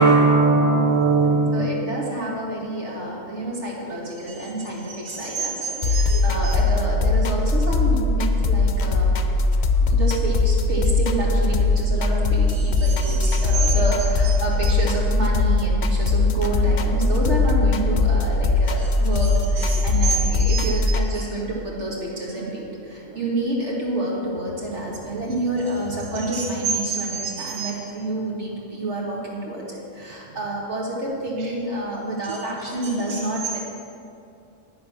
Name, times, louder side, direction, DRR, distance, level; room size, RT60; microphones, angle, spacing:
voice 1, 0.0-1.7 4.9-6.5 12.5-13.7 14.2-14.3 14.6-14.7 18.8-18.9 19.6-20.2 20.5-20.7 21.1-21.2 26.3-26.4 27.1-27.7 31.4-31.5, right 3 dB, 85° right, 4 dB, 1.1 m, -22 dB
voice 2, 1.5-9.1 9.9-33.6, right 1 dB, 65° right, -3 dB, 2.4 m, -28 dB
sound 1, 5.8-21.1, left 3 dB, 60° left, 1.0 m, -20 dB
10.5 x 9.4 x 5.9 m, 2.5 s
omnidirectional pair, 1.3 m